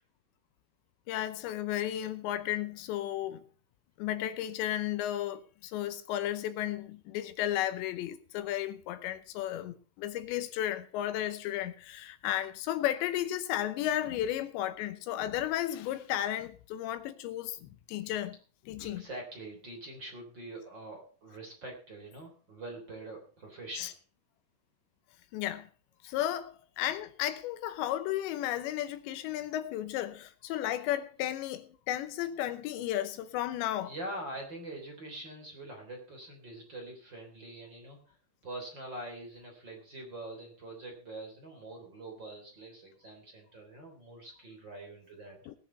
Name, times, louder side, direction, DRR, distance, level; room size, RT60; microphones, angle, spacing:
voice 1, 1.1-3.5 4.0-18.4 18.7-19.0 23.8-23.9 25.3-25.7 26.0-33.9 45.5-45.6, left 12 dB, 80° left, 3.0 m, -34 dB
voice 2, 18.8-24.0 33.8-38.0 38.4-45.4, right 2 dB, 25° right, 3.5 m, -44 dB
19.5 x 6.9 x 5.6 m
omnidirectional pair, 5.2 m